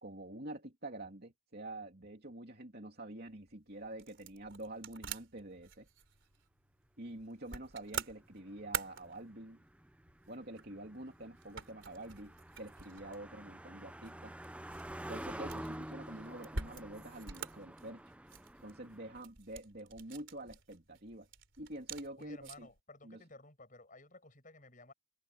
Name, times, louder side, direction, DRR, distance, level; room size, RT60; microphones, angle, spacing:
voice 1, 0.0-5.9 7.0-9.6 10.3-14.3 15.1-18.0 18.6-21.3 21.6-22.7 23.0-23.2, right 1 dB, 50° right, 3.0 m, -47 dB
sound 1, 3.2-22.8, right 6 dB, 65° right, 3.7 m, -48 dB
Car passing by, 8.1-19.2, right 1 dB, 5° right, 0.6 m, -49 dB
voice 2, 22.2-24.9, left 2 dB, 40° left, 7.8 m, -55 dB
head